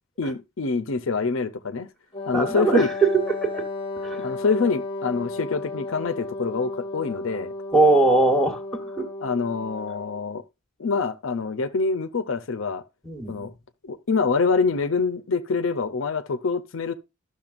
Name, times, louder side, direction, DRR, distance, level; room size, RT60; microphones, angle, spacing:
voice 1, 0.2-1.9 2.3-2.9 4.2-7.5 9.2-10.4 10.8-12.8 13.3-13.5 13.8-16.9, left 4 dB, 60° left, 0.6 m, -25 dB
Wind instrument woodwind instrument, 2.1-10.2, left 3 dB, 25° left, 0.7 m, -34 dB
voice 2, 2.3-3.6 4.0-4.2 7.7-9.1 13.0-13.5, right 3 dB, ahead, 1.2 m, -21 dB
12.0 x 6.4 x 2.5 m
head